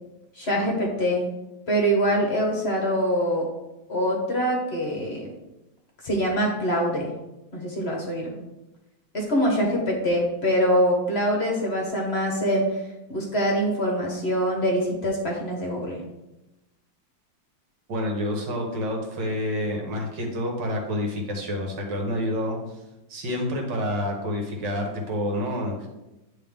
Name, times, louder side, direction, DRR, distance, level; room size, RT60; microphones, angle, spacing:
voice 1, 0.4-1.2 1.7-3.5 3.9-5.3 6.0-7.1 7.5-8.3 9.1-12.6 13.1-16.0, equal, 40° left, -1 dB, 1.1 m, -24 dB
voice 2, 17.9-22.6 23.1-25.9, equal, 65° right, 1 dB, 1.9 m, -28 dB
9.4 x 3.6 x 3.5 m, 0.98 s
omnidirectional pair, 2.1 m